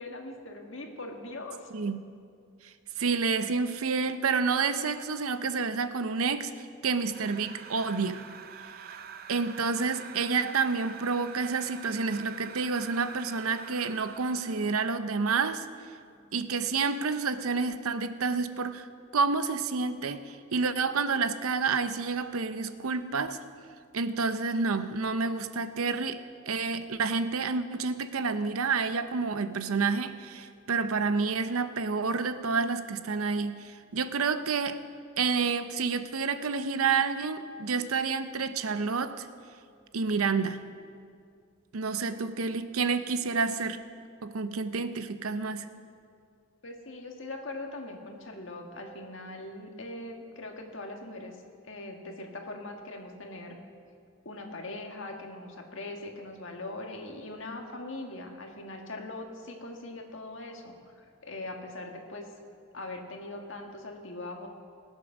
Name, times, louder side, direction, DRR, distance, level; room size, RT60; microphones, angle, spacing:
voice 1, 0.0-1.7 46.6-51.4 51.6-53.6 54.2-62.3 62.7-64.5, left 2 dB, 60° left, 2 dB, 1.7 m, -41 dB
voice 2, 2.6-8.2 9.3-15.7 16.3-23.4 23.9-34.8 35.2-39.3 39.9-40.6 41.7-43.8 44.2-45.7, right 4 dB, 85° right, 11 dB, 0.7 m, -29 dB
sound 1, 7.1-14.7, right 7 dB, 45° right, 0.5 m, -46 dB
19.5 x 8.4 x 6.1 m, 2.3 s
head